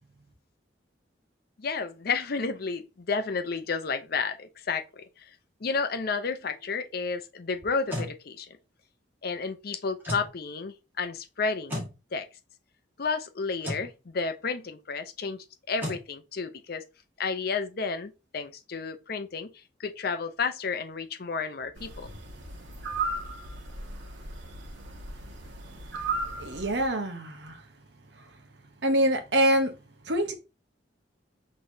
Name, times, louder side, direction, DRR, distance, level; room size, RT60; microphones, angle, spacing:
voice 1, 1.6-5.3 5.6-8.6 9.2-11.8 12.1-12.3 13.0-16.8 17.2-19.5 19.8-22.1, left 4 dB, 55° left, 0.6 m, -31 dB
sound 1, 7.6-8.1 10.0-10.3 11.7-11.9 13.6-13.9 15.8-16.0, left 1 dB, 10° right, 1.8 m, -33 dB
sound 2, 21.8-26.9, right 3 dB, 85° right, 1.2 m, -36 dB
voice 2, 26.4-27.6 28.8-29.7 30.0-30.3, right 1 dB, 65° right, 0.9 m, -25 dB
6.1 x 3.2 x 2.7 m
head